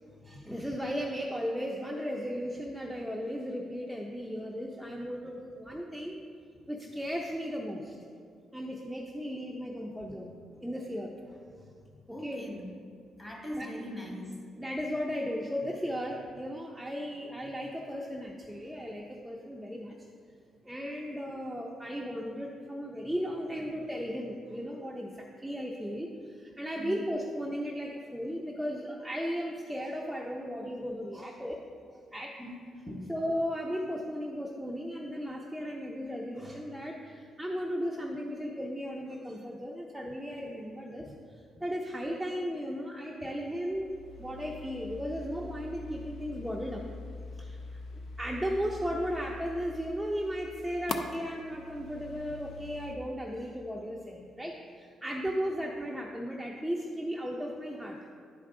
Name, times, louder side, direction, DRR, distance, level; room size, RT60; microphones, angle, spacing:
voice 1, 0.2-6.2 6.6-8.0 8.5-10.3 10.6-11.4 12.2-12.5 13.6-13.7 14.6-20.0 20.6-31.6 31.9-32.4 33.1-46.8 47.4-47.6 47.9-58.1, equal, ahead, -1 dB, 0.6 m, -36 dB
voice 2, 12.1-12.7 13.2-14.4 26.7-27.0 32.4-33.1, left 1 dB, 20° left, -1 dB, 1.6 m, -40 dB
sound 1, 43.7-52.9, left 3 dB, 65° left, 0.5 m, -43 dB
10.0 x 4.6 x 3.7 m, 2.2 s
cardioid pair, 90°, 0 cm